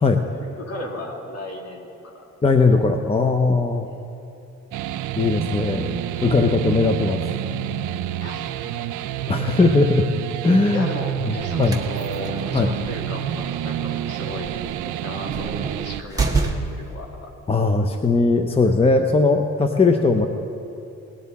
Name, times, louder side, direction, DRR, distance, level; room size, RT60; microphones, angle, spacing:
voice 1, 0.3-2.3 3.8-4.0 8.2-9.6 10.7-14.6 14.8-17.3, left 1 dB, 55° left, -1 dB, 2.7 m, -36 dB
voice 2, 2.4-3.9 5.2-7.2 9.3-10.1 10.4-10.9 11.2-11.8 12.5-12.7 17.5-20.3, left 3 dB, 20° left, 5 dB, 0.7 m, -19 dB
sound 1, 4.7-16.0, right 12 dB, 80° right, 0.5 m, -28 dB
sound 2, 11.4-17.0, right 3 dB, 10° right, 1.4 m, -29 dB
19.0 x 10.5 x 4.2 m, 2.7 s
cardioid pair, 90°, 30 cm